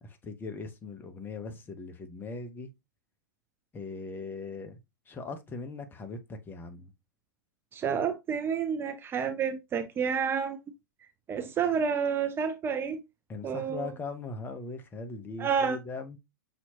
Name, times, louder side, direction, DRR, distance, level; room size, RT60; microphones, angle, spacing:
voice 1, 0.0-2.7 3.7-4.8 5.1-6.9 13.3-16.2, left 3 dB, 20° left, 0.8 m, -40 dB
voice 2, 7.7-10.6 11.3-13.0 13.4-13.9 15.4-15.8, right 6 dB, 20° right, 0.5 m, -29 dB
5.9 x 2.9 x 2.8 m
hypercardioid pair, 105°, 11 cm